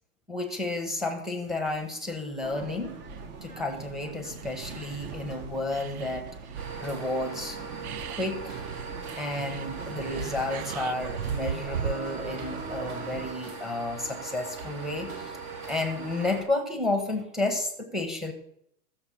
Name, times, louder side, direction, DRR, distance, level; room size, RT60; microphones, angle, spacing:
voice 1, 0.3-2.9 3.4-6.3 6.8-7.6 8.1-8.6 9.2-15.4 15.7-18.3, left 2 dB, ahead, 3 dB, 1.2 m, -31 dB
sound 1, 2.4-13.3, right 4 dB, 25° right, 0.9 m, -42 dB
sound 2, 3.1-3.2 3.9-4.0 4.2-5.3 5.7-6.9 7.5-7.6 7.8-12.2 12.7-13.1 13.8-14.1, right 9 dB, 70° right, 0.7 m, -38 dB
sound 3, 6.5-16.4, right 4 dB, 45° right, 2.6 m, -40 dB
14.0 x 7.1 x 5.8 m, 0.72 s
hypercardioid pair, 140°, 46 cm